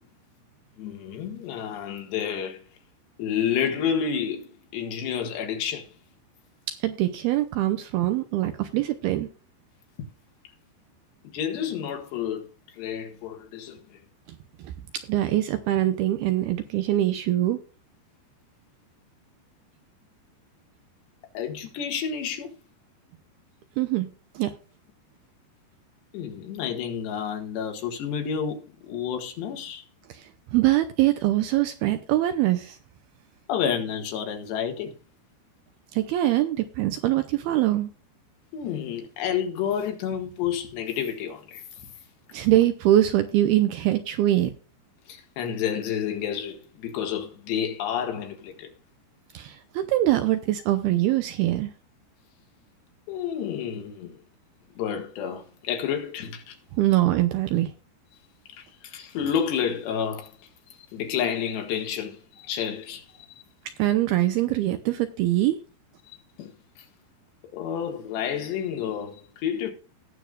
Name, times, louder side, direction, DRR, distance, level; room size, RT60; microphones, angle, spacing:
voice 1, 0.8-2.7 3.2-5.9 11.3-12.5 12.8-14.0 21.4-22.6 26.1-29.8 33.5-34.9 38.5-41.6 45.1-48.7 53.1-54.2 54.8-56.6 58.5-60.3 60.9-63.1 66.1-66.5 67.5-69.7, left 8 dB, 75° left, 3.7 m, -30 dB
voice 2, 6.8-9.3 15.1-17.6 23.8-24.1 24.4-24.5 30.5-32.8 35.9-37.9 42.3-44.5 49.3-51.7 56.8-57.7 63.8-65.6, right 14 dB, 80° right, 2.3 m, -23 dB
18.5 x 7.0 x 2.4 m
omnidirectional pair, 5.0 m